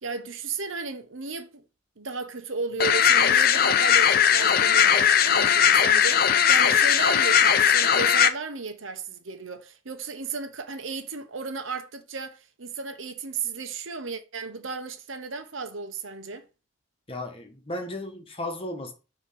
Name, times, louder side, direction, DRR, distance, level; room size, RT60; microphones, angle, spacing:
voice 1, 0.0-1.6 2.0-16.5, right 4 dB, 75° right, 1.0 m, -34 dB
sound 1, 2.8-8.3, left 8 dB, 45° left, 0.5 m, -19 dB
voice 2, 17.1-18.9, left 1 dB, 25° left, 1.1 m, -34 dB
6.9 x 3.1 x 5.5 m
head